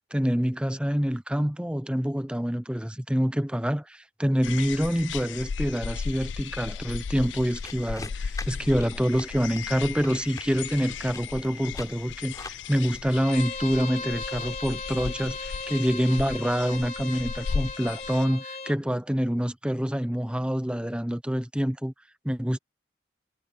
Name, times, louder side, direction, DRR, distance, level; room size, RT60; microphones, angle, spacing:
voice 1, 0.1-21.9 22.2-22.6, equal, 5° right, 0.8 m, -26 dB
sound 1, 4.4-18.2, left 6 dB, 75° left, 0.4 m, -36 dB
sound 2, 7.6-13.0, left 3 dB, 20° left, 5.2 m, -44 dB
Bowed string instrument, 13.1-18.8, left 4 dB, 35° left, 3.0 m, -37 dB
head